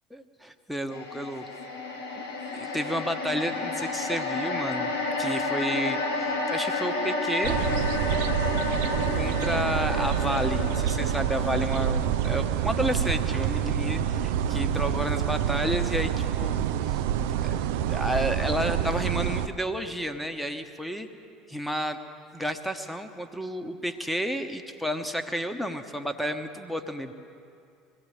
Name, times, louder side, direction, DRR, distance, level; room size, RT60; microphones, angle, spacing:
voice 1, 0.1-1.4 2.2-4.9 5.2-7.6 9.1-21.1 21.5-22.0 22.3-27.1, equal, ahead, 7 dB, 1.1 m, -31 dB
sound 1, 0.9-15.3 15.6-15.8, left 3 dB, 75° left, 2.2 m, -32 dB
sound 2, 7.4-19.5, right 10 dB, 65° right, 0.5 m, -27 dB
23.5 x 17.0 x 3.3 m, 2.5 s
figure-of-eight pair, 65°, 0 cm